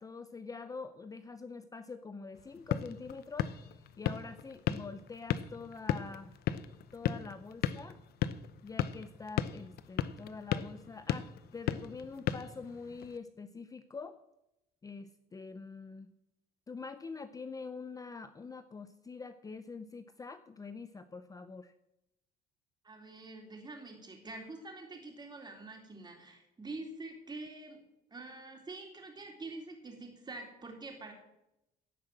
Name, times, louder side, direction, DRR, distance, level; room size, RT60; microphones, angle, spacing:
voice 1, 0.0-3.5 4.0-6.3 6.9-8.0 8.6-14.2 14.8-16.1 16.7-21.7, left 4 dB, 20° left, 11 dB, 0.6 m, -45 dB
sound 1, 2.4-13.2, left 10 dB, 70° left, 0.8 m, -37 dB
voice 2, 22.8-27.8 28.1-31.1, right 2 dB, 25° right, 2 dB, 3.6 m, -46 dB
17.0 x 5.7 x 7.7 m, 0.88 s
cardioid pair, 110°, 17 cm